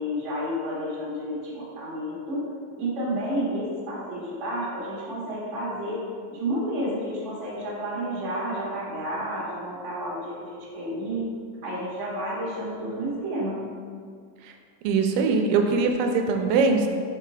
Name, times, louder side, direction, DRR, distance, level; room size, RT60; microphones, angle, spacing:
voice 1, 0.0-2.5 2.7-11.3 11.6-13.6, equal, 50° right, -7 dB, 0.8 m, -31 dB
voice 2, 14.8-16.9, right 4 dB, 85° right, 4 dB, 2.2 m, -22 dB
5.6 x 3.9 x 4.9 m, 2.1 s
omnidirectional pair, 3.9 m